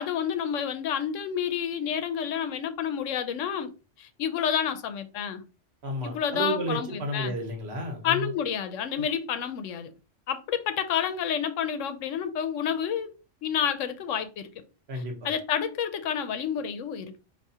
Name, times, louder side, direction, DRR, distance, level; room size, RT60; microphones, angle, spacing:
voice 1, 0.0-3.7 4.0-5.4 6.0-7.4 8.0-9.9 10.3-13.1 13.4-14.6 15.2-17.2, left 8 dB, 85° left, 1.0 m, -29 dB
voice 2, 5.8-8.3 8.9-9.0 14.9-15.3, equal, 60° right, 1.1 m, -32 dB
4.7 x 2.7 x 2.7 m
omnidirectional pair, 1.3 m